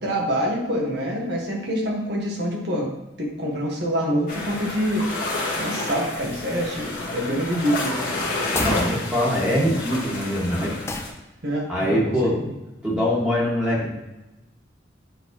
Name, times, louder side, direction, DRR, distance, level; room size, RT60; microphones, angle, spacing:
voice 1, 0.0-2.9 3.2-5.1 5.6-8.0 11.4-12.5, equal, 65° right, -1 dB, 1.5 m, -26 dB
sound 1, 4.3-11.1, left 2 dB, 55° left, 1.6 m, -29 dB
sound 2, 8.5-8.9 10.9-11.2, left 2 dB, 15° left, 0.5 m, -28 dB
voice 2, 8.6-10.7 11.7-12.4 12.8-13.9, equal, 5° right, -6 dB, 1.7 m, -23 dB
8.9 x 3.9 x 3.0 m, 1.0 s
head